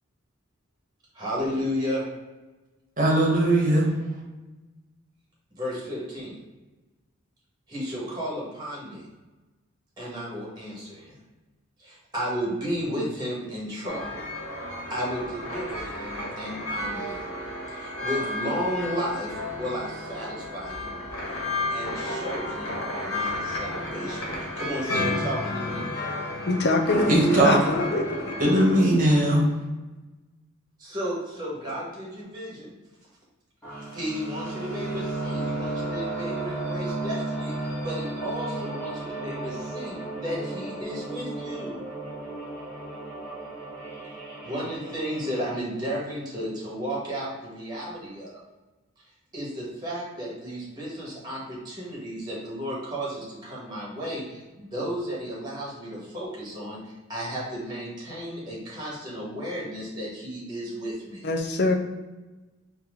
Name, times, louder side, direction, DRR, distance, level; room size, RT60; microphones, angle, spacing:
voice 1, 1.1-2.0 5.5-6.4 7.7-9.1 10.0-11.2 11.8-14.2 14.9-17.2 17.7-21.0 21.7-26.0 30.8-32.7 33.9-39.9 40.2-41.8 44.4-48.4 49.3-61.2, equal, 20° right, -6 dB, 1.4 m, -33 dB
voice 2, 3.0-3.9 27.1-27.5 28.4-29.4, right 1 dB, 40° right, -3 dB, 1.1 m, -19 dB
sound 1, 13.9-28.8, left 1 dB, 85° left, 1.4 m, -32 dB
voice 3, 26.5-28.3 61.2-61.7, left 2 dB, 50° left, 4 dB, 0.5 m, -24 dB
sound 2, 33.6-45.6, right 2 dB, 5° left, 1.3 m, -34 dB
4.3 x 2.8 x 3.7 m, 1.1 s
head